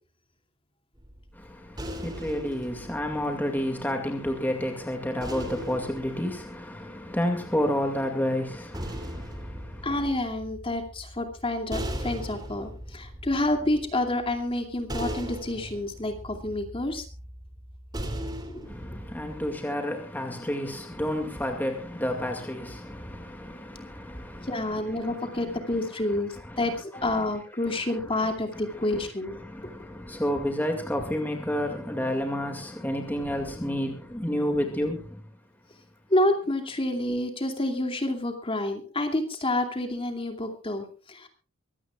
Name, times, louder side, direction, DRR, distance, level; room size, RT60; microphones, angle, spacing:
sound 1, 1.0-4.3 5.2-7.5 8.4-19.5, equal, 20° right, 2.9 m, -39 dB
voice 1, 1.3-10.0 18.6-27.3 27.6-35.2, equal, 10° left, 2.2 m, -31 dB
voice 2, 9.8-17.1 18.2-18.7 24.4-29.4 36.1-41.3, left 1 dB, 25° left, 2.5 m, -29 dB
24.0 x 16.5 x 2.4 m
head